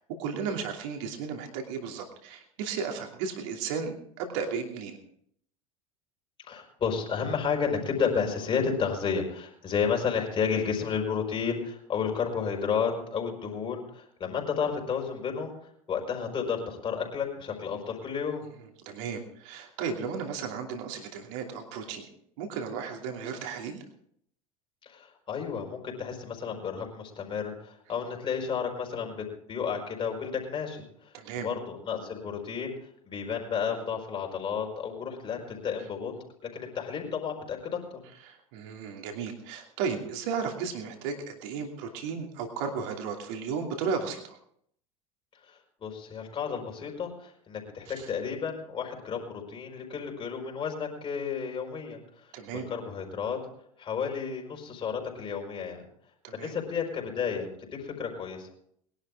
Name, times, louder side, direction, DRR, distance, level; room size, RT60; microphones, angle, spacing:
voice 1, 0.1-5.0 18.9-22.1 22.4-23.8 31.1-31.5 38.2-44.4 47.9-48.1 52.3-52.7 56.2-56.5, right 6 dB, 55° right, 2 dB, 2.8 m, -34 dB
voice 2, 6.5-15.5 15.9-18.4 24.8-30.8 31.3-32.7 33.0-36.1 36.5-38.0 45.5-53.4 53.8-55.8 56.3-58.5, left 6 dB, 30° left, 1 dB, 5.0 m, -32 dB
21.5 x 11.5 x 3.6 m, 0.66 s
figure-of-eight pair, 75°, 18 cm